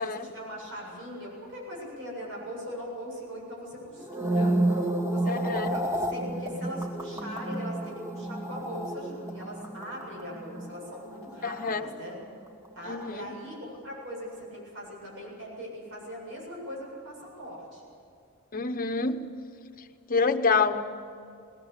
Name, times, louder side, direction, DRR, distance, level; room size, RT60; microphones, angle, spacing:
voice 1, 0.0-4.6 5.1-12.2 12.7-17.8, equal, 60° right, -3 dB, 7.6 m, -40 dB
sound 1, 4.0-12.4 12.6-13.0, right 1 dB, 15° right, 1.3 m, -31 dB
voice 2, 5.3-5.7 11.4-11.9 12.9-13.3 18.5-19.3 20.1-20.8, left 4 dB, 40° left, 8 dB, 1.0 m, -27 dB
21.5 x 19.0 x 8.2 m, 2.4 s
head